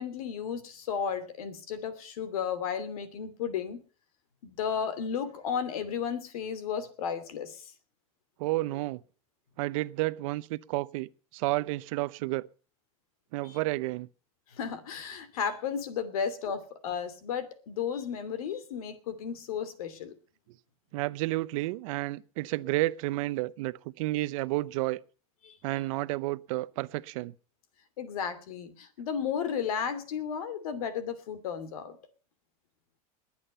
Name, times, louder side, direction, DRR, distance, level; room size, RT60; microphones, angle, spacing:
voice 1, 0.0-3.8 4.4-7.7 13.4-13.6 14.5-20.1 25.4-25.6 28.0-32.0, left 7 dB, 80° left, 2.8 m, -34 dB
voice 2, 8.4-9.0 9.6-12.5 13.3-14.1 20.9-25.0 25.6-27.3, right 19 dB, 65° right, 0.8 m, -31 dB
21.0 x 8.7 x 5.6 m
supercardioid pair, 125°, 18 cm